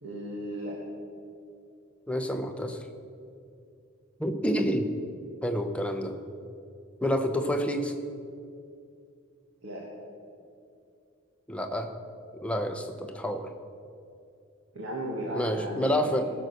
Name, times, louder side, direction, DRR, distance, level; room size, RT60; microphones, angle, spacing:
voice 1, 0.0-0.8 9.6-9.8 14.7-16.2, right 1 dB, 70° right, -5 dB, 1.8 m, -35 dB
voice 2, 2.1-2.8 4.2-4.9 5.4-6.2 7.0-7.9 11.5-11.9 12.3-13.5 15.3-16.2, equal, 5° left, 5 dB, 0.7 m, -28 dB
15.5 x 6.5 x 6.5 m, 2.5 s
head